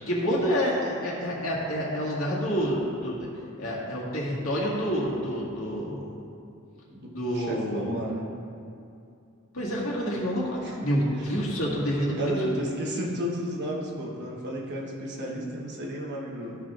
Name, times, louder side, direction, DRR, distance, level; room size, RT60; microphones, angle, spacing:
voice 1, 0.1-3.3 3.6-6.1 7.1-7.9 9.5-12.3, equal, 90° left, -5 dB, 1.8 m, -28 dB
voice 2, 6.9-8.3 10.6-10.7 11.2-11.4 12.2-16.6, right 1 dB, 55° right, -3 dB, 1.3 m, -32 dB
12.5 x 6.0 x 2.5 m, 2.5 s
head